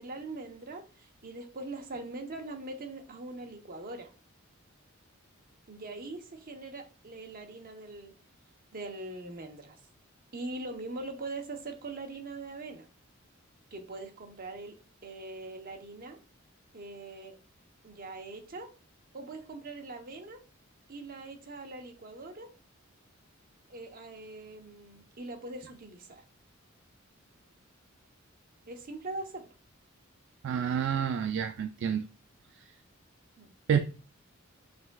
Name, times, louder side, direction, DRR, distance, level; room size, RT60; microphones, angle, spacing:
voice 1, 0.0-4.1 5.7-8.1 8.7-9.8 10.3-12.9 13.7-14.7 15.0-16.2 16.7-17.4 17.8-18.7 19.1-20.4 20.9-22.5 23.7-26.2 28.7-29.5 33.4-33.5, right 2 dB, 45° right, 0.8 m, -42 dB
voice 2, 30.4-32.0 33.7-33.8, right 8 dB, 60° right, 0.3 m, -28 dB
5.0 x 3.5 x 2.2 m
head